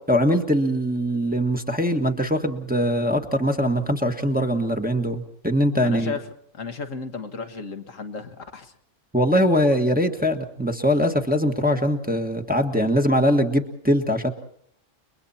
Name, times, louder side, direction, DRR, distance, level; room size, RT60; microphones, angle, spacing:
voice 1, 0.1-6.1 9.1-14.3, equal, 5° right, 3 dB, 1.5 m, -22 dB
voice 2, 5.8-8.7, left 4 dB, 80° left, 6 dB, 1.9 m, -34 dB
30.0 x 22.0 x 4.3 m, 0.67 s
omnidirectional pair, 1.3 m